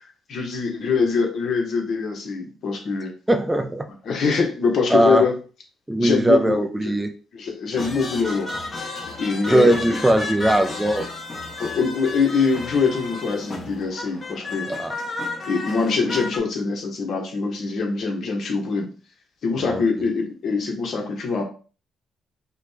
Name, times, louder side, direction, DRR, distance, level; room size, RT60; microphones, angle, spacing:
voice 1, 0.3-3.1 4.0-5.3 6.0-7.0 7.3-8.5 9.2-9.7 11.6-14.7 15.5-18.9 19.4-21.4, left 4 dB, 60° left, 3 dB, 1.1 m, -23 dB
voice 2, 3.3-3.9 4.9-5.3 5.9-7.1 9.5-11.1 14.7-15.0 19.6-20.1, right 1 dB, 10° right, 7 dB, 0.4 m, -20 dB
sound 1, 7.7-16.4, left 3 dB, 35° left, 1.1 m, -32 dB
4.9 x 2.2 x 3.3 m, 0.37 s
cardioid pair, 90°, 0 cm